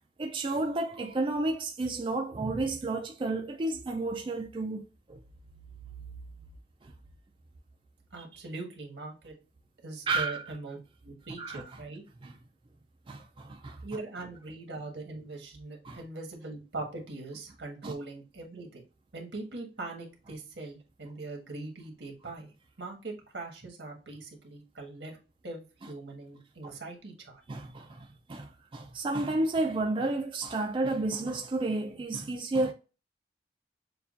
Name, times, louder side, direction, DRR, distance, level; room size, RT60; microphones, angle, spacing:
voice 1, 0.2-5.2 6.8-6.9 10.1-10.4 11.4-11.6 12.2-12.3 13.1-13.8 15.8-16.0 17.8-17.9 26.6-26.7 27.5-32.7, right 2 dB, 30° right, 0.4 m, -31 dB
voice 2, 8.1-9.3 9.8-10.8 11.0-12.0 13.8-18.8 19.1-22.5 22.8-25.2 25.4-27.4, right 2 dB, 85° right, 1.5 m, -41 dB
6.8 x 2.4 x 2.5 m
head